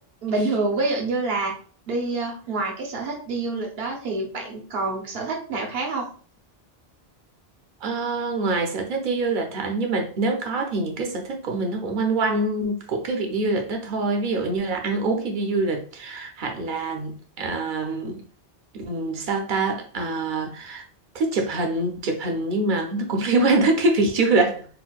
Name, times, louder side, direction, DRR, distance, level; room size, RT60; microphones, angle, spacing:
voice 1, 0.2-1.5 1.9-6.1, right 3 dB, 75° right, 1.0 m, -27 dB
voice 2, 7.8-18.2 18.7-20.8 21.1-24.7, right 3 dB, 55° right, 0.8 m, -25 dB
4.2 x 2.1 x 2.3 m
omnidirectional pair, 1.0 m